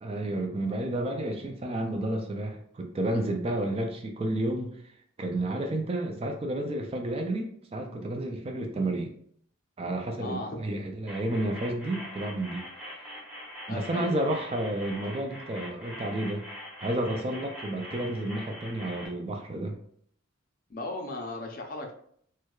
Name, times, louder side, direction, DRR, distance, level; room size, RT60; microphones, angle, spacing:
voice 1, 0.0-4.7 5.2-9.1 9.8-12.6 13.7-16.4 16.8-19.8, right 1 dB, 25° right, 3 dB, 0.3 m, -31 dB
voice 2, 10.2-10.7 13.7-14.3 20.7-21.9, left 2 dB, 40° left, 3 dB, 0.5 m, -36 dB
sound 1, 11.1-19.1, equal, 5° right, 0.8 m, -43 dB
4.5 x 2.2 x 2.3 m, 0.63 s
head